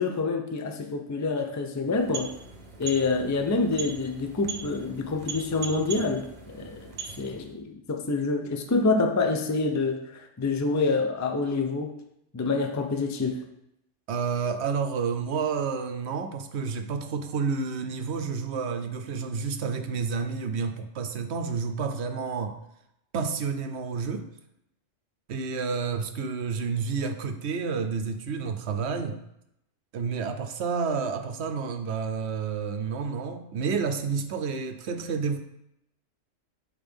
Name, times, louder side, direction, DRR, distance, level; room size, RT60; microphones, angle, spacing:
voice 1, 0.0-2.3 2.8-11.9 12.3-13.4, left 3 dB, 25° left, 5 dB, 0.4 m, -27 dB
sound 1, 1.8-7.6, right 6 dB, 35° right, 1.0 m, -40 dB
voice 2, 14.1-22.6 23.1-24.3 25.3-29.2 29.9-35.4, right 5 dB, 65° right, 6 dB, 0.9 m, -30 dB
9.0 x 4.6 x 3.4 m, 0.80 s
omnidirectional pair, 1.3 m